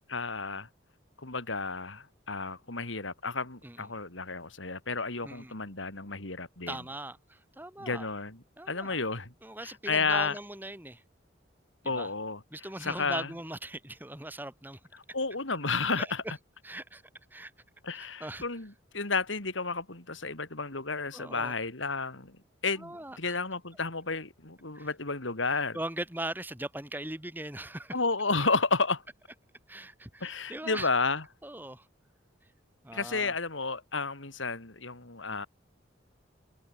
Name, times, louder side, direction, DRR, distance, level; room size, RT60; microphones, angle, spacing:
voice 1, 0.1-0.7 1.2-6.8 7.8-8.4 8.7-9.3 9.6-10.4 11.9-12.4 12.8-13.3 15.1-16.2 17.8-22.4 22.6-25.8 27.9-29.0 30.2-31.2 32.9-35.5, left 4 dB, 80° left, 3.6 m, -32 dB
voice 2, 6.7-8.1 8.6-9.0 9.4-11.0 11.9-12.1 12.5-14.8 16.0-16.1 16.6-17.0 17.3-17.5 17.9-18.4 21.1-21.5 22.8-23.4 24.7-24.9 25.5-28.0 29.7-30.9 31.4-31.9 32.8-33.3, right 1 dB, 10° right, 2.2 m, -40 dB
open air
head